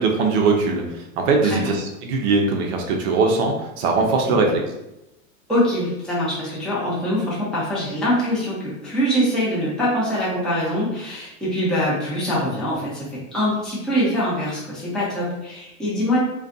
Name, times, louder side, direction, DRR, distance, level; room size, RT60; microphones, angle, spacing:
voice 1, 0.0-4.6, right 4 dB, 50° right, 1 dB, 0.5 m, -21 dB
voice 2, 4.2-4.5 5.5-16.2, equal, ahead, -8 dB, 0.6 m, -23 dB
2.4 x 2.2 x 2.5 m, 0.92 s
hypercardioid pair, 120°, 41 cm